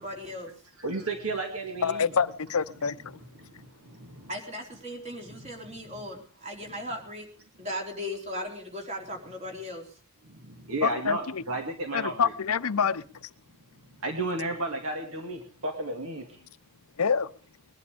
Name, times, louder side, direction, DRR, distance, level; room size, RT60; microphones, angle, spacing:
voice 1, 0.0-0.5 4.3-7.3 7.6-9.9, left 1 dB, 30° right, 4.0 m, -37 dB
voice 2, 0.8-2.1 3.1-4.3 5.4-5.9 10.2-12.3 14.0-16.2, right 2 dB, 65° right, 2.3 m, -34 dB
voice 3, 1.8-3.0 10.8-11.4 11.9-13.3 17.0-17.3, left 6 dB, 75° left, 0.7 m, -26 dB
21.0 x 11.0 x 5.1 m
head